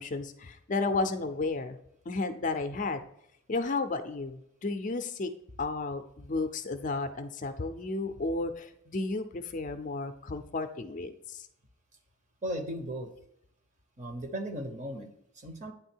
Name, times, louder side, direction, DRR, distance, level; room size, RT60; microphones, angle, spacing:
voice 1, 0.0-1.8 2.1-3.0 3.5-5.3 5.6-11.5, left 3 dB, 35° left, 8 dB, 0.4 m, -33 dB
voice 2, 12.4-13.1 14.0-15.7, equal, 35° right, 6 dB, 0.8 m, -37 dB
9.3 x 3.6 x 4.4 m, 0.76 s
head